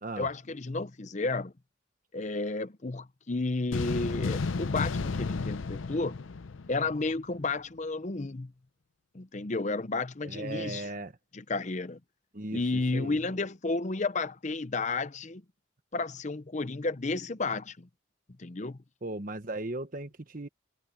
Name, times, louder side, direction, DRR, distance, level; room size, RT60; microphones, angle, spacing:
voice 1, 0.2-1.5 2.1-6.2 6.7-8.5 9.1-10.9 11.3-12.0 12.5-15.4 15.9-17.9 18.4-18.8, left 3 dB, 35° left, 0.7 m, -32 dB
sound 1, 3.7-7.2, left 4 dB, 80° left, 0.6 m, -32 dB
voice 2, 10.2-11.1 12.3-13.2 19.0-20.5, right 2 dB, 45° right, 1.3 m, -37 dB
head